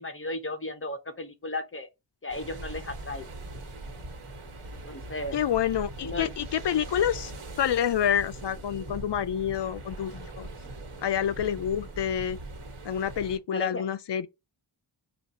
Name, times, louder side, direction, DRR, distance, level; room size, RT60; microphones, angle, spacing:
voice 1, 0.0-1.9 2.2-3.3 4.8-5.4 6.0-6.3 13.5-13.8, left 2 dB, 25° left, 0.7 m, -35 dB
sound 1, 2.3-13.4, right 2 dB, 90° right, 1.5 m, -41 dB
voice 2, 5.3-7.3 7.6-10.5 11.0-12.4 12.9-14.3, left 9 dB, 60° left, 0.5 m, -28 dB
5.1 x 2.5 x 4.0 m
wide cardioid pair, 95°, 49 cm